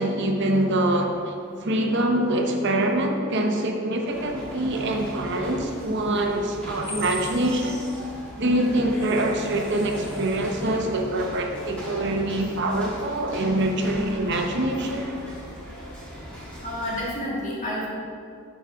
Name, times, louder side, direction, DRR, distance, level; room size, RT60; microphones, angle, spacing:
voice 1, 0.0-1.3 1.6-7.8 8.4-15.1, right 1 dB, 50° right, 3 dB, 0.8 m, -24 dB
sound 1, 4.1-17.1, equal, 5° left, 1.7 m, -38 dB
voice 2, 16.6-17.9, left 1 dB, 35° left, -5 dB, 1.8 m, -29 dB
6.4 x 6.4 x 4.6 m, 2.3 s
head